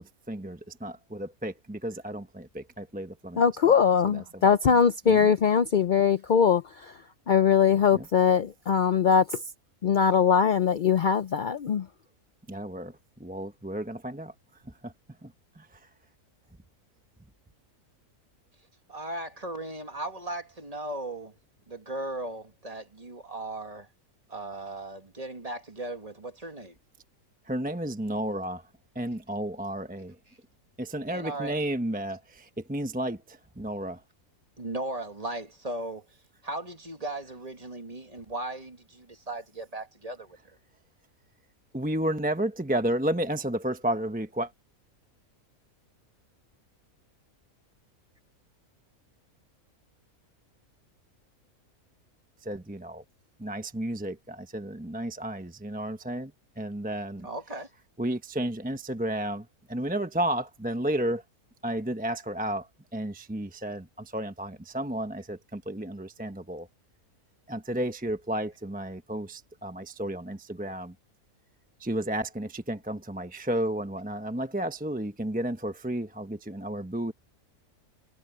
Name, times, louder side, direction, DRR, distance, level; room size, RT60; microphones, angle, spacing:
voice 1, 0.0-3.7 4.0-4.6 5.1-5.3 7.9-8.1 12.5-14.3 14.8-14.9 15.2-15.3 15.6-15.7 27.5-28.6 28.9-30.1 30.8-34.0 41.7-44.5 52.4-53.0 53.4-56.3 56.6-57.3 58.0-61.2 61.6-62.7 62.9-66.7 67.5-70.9 71.8-77.1, right 1 dB, 5° right, 0.8 m, -32 dB
voice 2, 3.4-6.6 7.3-9.2 9.8-11.8, left 7 dB, 75° left, 0.4 m, -21 dB
voice 3, 18.9-21.3 21.7-23.9 24.3-26.7 30.3-30.4 31.1-31.5 34.6-36.1 36.4-40.4 57.2-57.7, right 2 dB, 25° right, 1.9 m, -37 dB
omnidirectional pair, 1.5 m